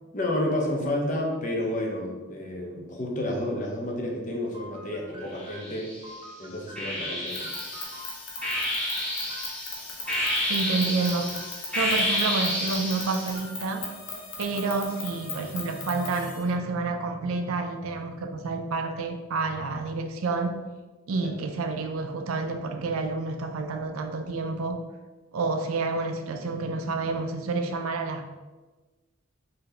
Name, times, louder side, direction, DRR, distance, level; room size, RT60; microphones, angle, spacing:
voice 1, 0.1-5.9 6.4-7.5 21.2-21.3, left 1 dB, 35° left, 0 dB, 0.6 m, -30 dB
sound 1, 4.5-9.6 10.0-11.7 12.0-13.7, right 1 dB, 25° right, 0.4 m, -46 dB
sound 2, 5.4-6.1 6.8-13.4, left 1 dB, 5° left, 1.0 m, -30 dB
sound 3, 7.3-16.5, left 3 dB, 80° left, 0.8 m, -39 dB
voice 2, 10.4-11.3 11.7-13.9 14.4-20.5 21.1-24.8 25.3-28.3, right 3 dB, 85° right, 6 dB, 0.4 m, -29 dB
4.0 x 2.7 x 3.2 m, 1.2 s
head